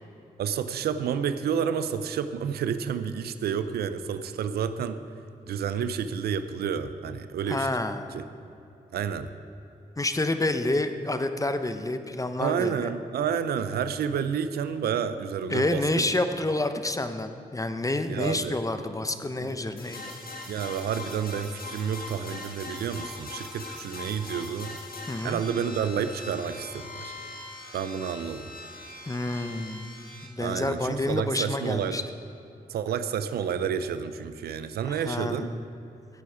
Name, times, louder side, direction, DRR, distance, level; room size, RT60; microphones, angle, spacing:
voice 1, 0.4-5.0 5.5-7.7 8.1-8.3 8.9-9.3 12.4-15.8 18.1-18.6 19.4-19.6 20.5-24.8 25.2-27.1 27.7-28.5 30.4-32.0 32.7-35.5, right 7 dB, 85° right, 11 dB, 0.5 m, -30 dB
voice 2, 7.5-8.1 10.0-12.9 15.5-20.1 25.1-25.4 29.1-29.9 30.2-32.0 34.9-35.6, left 2 dB, 20° left, 9 dB, 1.0 m, -28 dB
sound 1, 19.8-30.3, left 2 dB, 65° left, 1.7 m, -41 dB
16.0 x 8.4 x 4.9 m, 2.9 s
cardioid pair, 50°, 16 cm